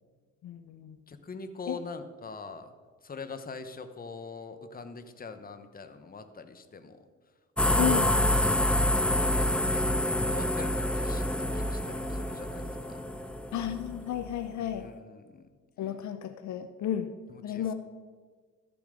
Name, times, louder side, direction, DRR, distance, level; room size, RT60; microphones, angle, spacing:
voice 1, 0.4-1.0 1.7-1.8 7.8-8.1 13.5-14.9 15.8-17.1 17.4-17.7, left 10 dB, 70° left, 10 dB, 0.7 m, -32 dB
voice 2, 1.1-2.7 3.0-7.0 7.6-9.5 9.7-13.0 14.6-15.5 17.3-17.6, left 4 dB, 30° left, 9 dB, 1.0 m, -44 dB
sound 1, 7.6-14.4, left 1 dB, 5° left, 0.5 m, -27 dB
13.5 x 7.1 x 5.0 m, 1.5 s
cardioid pair, 90°, 30 cm